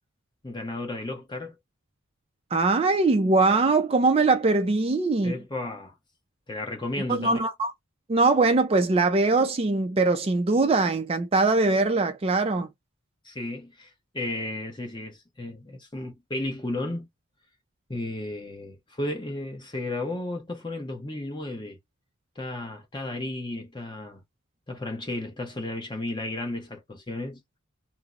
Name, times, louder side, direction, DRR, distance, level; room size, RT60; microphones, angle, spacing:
voice 1, 0.4-1.6 5.2-5.9 6.5-7.4 13.2-17.1 17.9-21.8 22.4-24.2 24.7-27.4, left 2 dB, 20° left, 0.8 m, -33 dB
voice 2, 2.5-5.4 7.1-7.7 8.1-12.7, right 3 dB, 25° right, 0.3 m, -22 dB
2.8 x 2.0 x 3.6 m
head